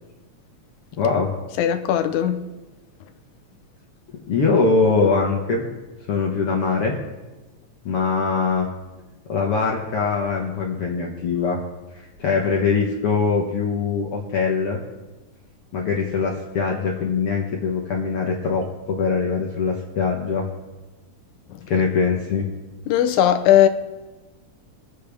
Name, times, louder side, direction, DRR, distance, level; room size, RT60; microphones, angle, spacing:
voice 1, 1.0-1.3 4.3-5.7 6.1-7.0 7.9-8.7 9.3-11.6 11.9-14.8 15.7-20.5 21.7-22.5, left 4 dB, 55° left, 1.9 m, -22 dB
voice 2, 1.6-2.5 22.9-23.7, left 11 dB, 85° left, 2.2 m, -18 dB
23.0 x 8.2 x 3.5 m
omnidirectional pair, 3.4 m